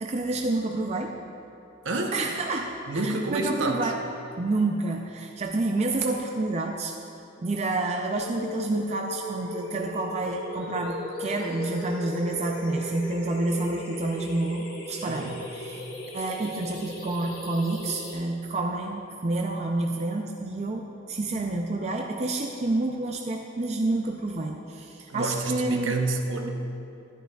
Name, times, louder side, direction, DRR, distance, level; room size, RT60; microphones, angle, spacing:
voice 1, 0.0-1.2 2.1-4.0 4.4-7.0 7.4-15.8 16.1-26.0, right 2 dB, 35° right, 2 dB, 0.4 m, -29 dB
voice 2, 2.9-3.9 15.0-15.5 25.1-26.5, right 2 dB, 65° right, 3 dB, 0.8 m, -29 dB
sound 1, 8.1-18.1, left 1 dB, 45° left, 1.6 m, -38 dB
sound 2, 10.6-15.4, left 4 dB, 30° left, 1.1 m, -43 dB
12.0 x 11.0 x 2.3 m, 2.8 s
head